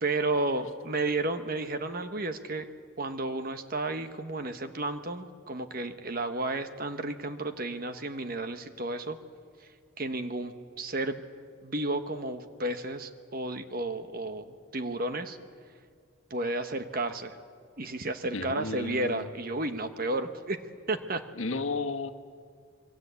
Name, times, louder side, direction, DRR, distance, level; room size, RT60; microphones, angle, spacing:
voice 1, 0.0-2.7 3.0-9.2 10.0-11.2 11.6-15.4 16.3-17.4 17.8-20.6 20.9-21.2, right 2 dB, 45° right, 8 dB, 1.2 m, -32 dB
voice 2, 18.3-19.3 21.3-22.1, left 3 dB, 75° left, 5 dB, 1.4 m, -33 dB
27.0 x 22.5 x 8.3 m, 2.1 s
head